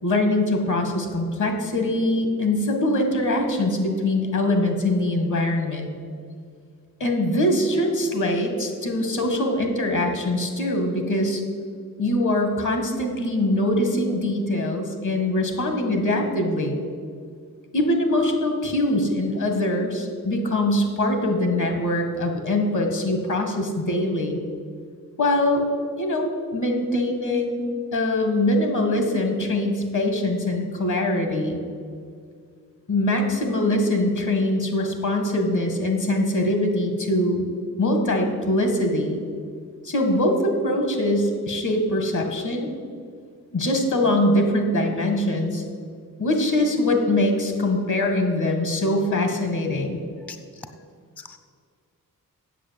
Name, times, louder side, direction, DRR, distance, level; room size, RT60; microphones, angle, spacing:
voice 1, 0.0-5.9 7.0-11.4 12.0-16.8 17.7-24.4 25.2-25.6 26.0-27.7 27.9-31.6 32.9-37.5 37.8-39.2 39.8-42.7 43.5-45.6 46.2-50.0, left 1 dB, 60° left, 4 dB, 2.0 m, -23 dB
voice 2, 26.9-27.7 50.3-50.4 51.2-51.4, equal, 5° left, 7 dB, 0.4 m, -35 dB
8.3 x 7.5 x 7.7 m, 2.1 s
wide cardioid pair, 100°, 34 cm